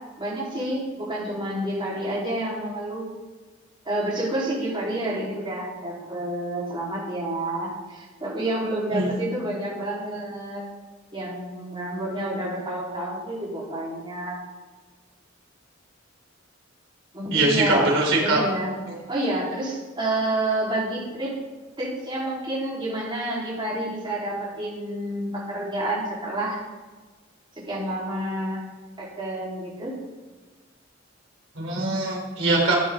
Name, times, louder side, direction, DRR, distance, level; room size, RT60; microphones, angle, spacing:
voice 1, 0.2-3.0 3.8-10.6 11.1-14.3 17.1-18.0 18.2-18.8 19.1-21.3 21.8-26.6 27.6-28.6 29.0-29.9, right 1 dB, 25° right, -6 dB, 4.2 m, -29 dB
voice 2, 17.3-18.4 31.5-32.7, right 2 dB, 70° right, -2 dB, 4.2 m, -22 dB
15.0 x 10.0 x 3.9 m, 1.3 s
head